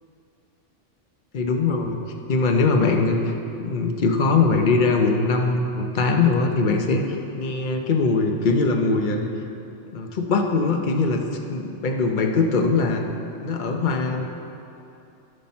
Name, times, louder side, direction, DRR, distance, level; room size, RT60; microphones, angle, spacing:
voice 1, 1.3-2.0 2.3-9.3 9.9-13.0 13.4-14.2, left 3 dB, 45° left, 3 dB, 0.9 m, -21 dB
14.5 x 5.9 x 4.3 m, 2.7 s
omnidirectional pair, 1.2 m